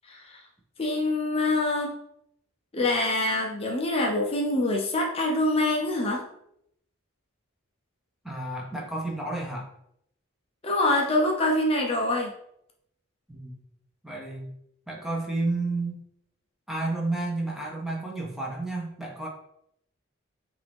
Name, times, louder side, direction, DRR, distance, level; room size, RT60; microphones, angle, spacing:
voice 1, 0.1-0.4 0.8-2.0 2.7-6.3 10.6-12.3, left 2 dB, 30° left, 0 dB, 0.6 m, -25 dB
voice 2, 8.2-9.7 13.3-13.6 14.0-14.5 14.9-16.0 16.7-19.3, right 2 dB, ahead, -2 dB, 0.8 m, -31 dB
5.8 x 2.6 x 3.5 m, 0.75 s
head